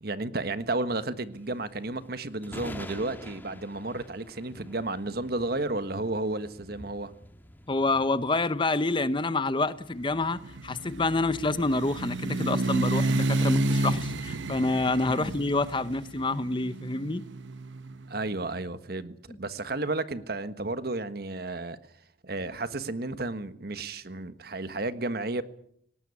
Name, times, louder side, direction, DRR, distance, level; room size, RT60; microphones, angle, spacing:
voice 1, 0.0-7.1 15.1-15.3 18.1-21.8 22.2-25.4, right 2 dB, 55° right, 1.5 m, -32 dB
sound 1, 1.3-9.9, left 1 dB, 10° left, 1.7 m, -47 dB
voice 2, 7.7-17.2, left 2 dB, 25° left, 0.8 m, -27 dB
sound 2, 10.0-18.0, right 2 dB, 85° right, 1.0 m, -30 dB
19.0 x 19.0 x 9.7 m
head